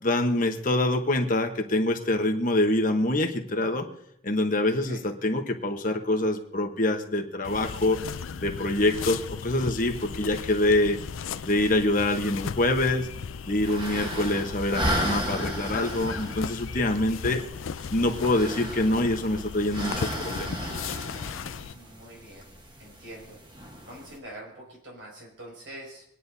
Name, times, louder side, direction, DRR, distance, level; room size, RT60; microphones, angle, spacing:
voice 1, 0.0-3.9 4.2-8.0 8.4-11.0 11.4-13.1 13.5-17.4 17.9-20.6, left 1 dB, 40° left, 4 dB, 1.2 m, -25 dB
voice 2, 4.6-5.0 8.9-9.0 21.7-22.5 22.8-23.4 23.9-26.0, right 1 dB, 75° right, -2 dB, 6.2 m, -45 dB
sound 1, 7.4-21.7, left 6 dB, 85° left, 0.5 m, -36 dB
sound 2, 13.5-24.2, equal, 25° right, 1.3 m, -35 dB
26.0 x 9.9 x 2.8 m, 0.74 s
head